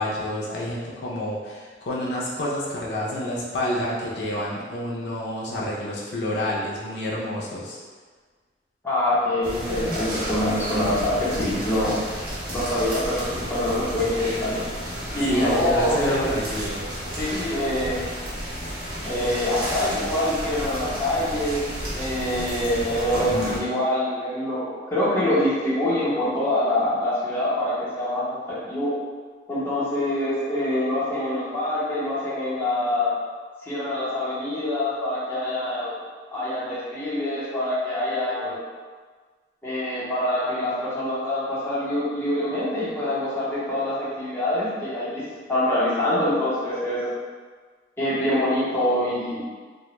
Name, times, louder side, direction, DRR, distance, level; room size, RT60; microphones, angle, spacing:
voice 1, 0.0-7.8 11.4-11.7 15.3-16.8, left 1 dB, 70° left, -5 dB, 0.4 m, -28 dB
voice 2, 8.8-12.0 12.5-14.6 15.1-16.3 17.2-18.0 19.0-21.7 21.9-28.9 29.5-33.1 33.6-36.0 36.3-38.6 39.6-45.2 45.5-47.1 48.0-49.4, left 1 dB, 15° left, -10 dB, 0.7 m, -25 dB
sound 1, 9.4-23.6, equal, 55° right, 0.7 m, -32 dB
2.1 x 2.0 x 2.9 m, 1.5 s
head